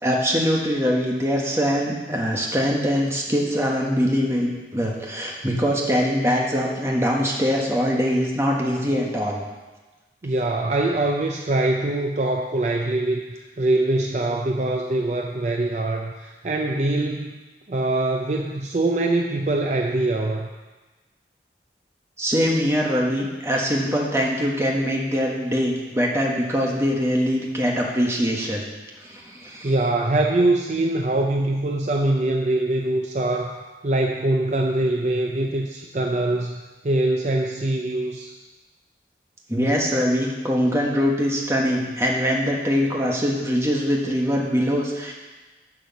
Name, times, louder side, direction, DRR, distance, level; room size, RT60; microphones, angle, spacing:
voice 1, 0.0-9.4 22.2-28.6 29.0-29.7 39.5-45.1, equal, 15° right, -2 dB, 1.3 m, -23 dB
voice 2, 10.2-17.4 17.7-20.5 29.6-38.3, right 2 dB, 40° right, 2 dB, 0.5 m, -23 dB
10.5 x 4.9 x 7.0 m, 1.2 s
head